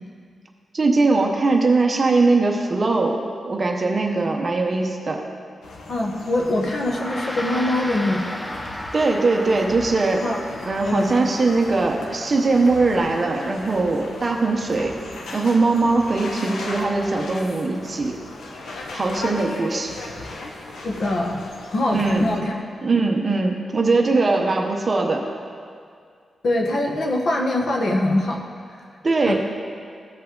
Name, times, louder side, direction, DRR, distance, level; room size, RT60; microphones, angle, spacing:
voice 1, 0.7-3.2 3.4-5.2 8.9-10.3 10.6-14.9 15.3-18.2 18.9-19.9 21.9-22.3 22.8-25.2 29.0-29.3, right 3 dB, 30° right, 2 dB, 0.8 m, -20 dB
sound 1, 5.6-22.4, left 2 dB, 90° left, 1.0 m, -37 dB
voice 2, 5.9-8.4 10.2-10.4 10.8-11.3 20.8-21.4 21.7-22.6 26.4-28.4 29.2-29.3, left 1 dB, 50° left, 0 dB, 1.1 m, -23 dB
Gong, 6.8-16.4, left 1 dB, 10° left, 0.5 m, -36 dB
15.5 x 5.5 x 3.8 m, 2.2 s
wide cardioid pair, 175°, 0 cm